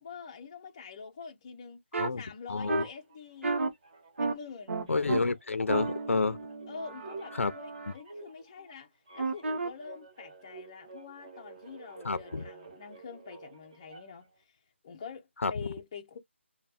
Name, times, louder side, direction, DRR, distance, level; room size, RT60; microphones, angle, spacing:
voice 1, 0.0-1.8 2.2-3.6 4.2-4.8 6.7-8.9 9.1-14.3 14.8-16.2, left 6 dB, 20° left, 0.5 m, -45 dB
sound 1, 1.9-2.1 2.7-2.8 3.4-3.7 4.2-4.3 4.7-5.2 5.7-7.9 9.2-9.7, right 3 dB, 70° right, 1.1 m, -32 dB
voice 2, 2.5-2.8 4.9-6.4 7.4-7.5 12.0-12.4 15.4-15.5, left 4 dB, 85° left, 0.6 m, -29 dB
sound 2, 2.7-4.5 4.8-14.3, right 3 dB, 30° right, 1.0 m, -50 dB
3.4 x 2.2 x 4.1 m
hypercardioid pair, 175°, 7 cm